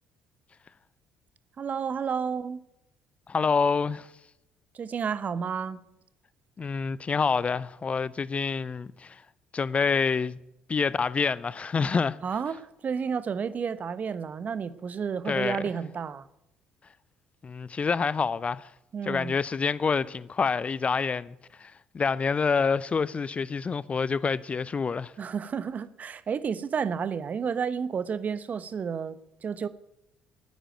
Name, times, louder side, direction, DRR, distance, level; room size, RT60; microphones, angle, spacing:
voice 1, 1.6-2.6 4.7-5.8 12.2-16.3 18.9-19.3 25.2-29.7, right 6 dB, 40° right, 1.0 m, -31 dB
voice 2, 3.3-4.1 6.6-9.2 9.5-10.4 10.7-12.2 15.3-15.6 17.4-18.7 19.0-25.1, left 5 dB, 30° left, 0.6 m, -27 dB
13.5 x 10.0 x 9.0 m
figure-of-eight pair, 50°, 4 cm